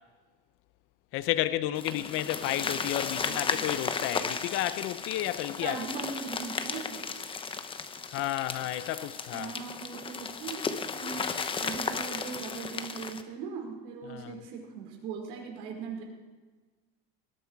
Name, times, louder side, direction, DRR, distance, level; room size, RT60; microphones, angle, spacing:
voice 1, 1.1-5.8 8.1-9.5 14.1-14.3, left 14 dB, 45° left, 0.7 m, -32 dB
sound 1, 1.8-13.2, left 5 dB, 20° left, 0.9 m, -35 dB
voice 2, 3.2-3.7 5.6-7.0 9.3-11.3 11.6-16.0, right 5 dB, 70° right, 4.9 m, -40 dB
20.0 x 12.0 x 4.7 m
supercardioid pair, 135°, 29 cm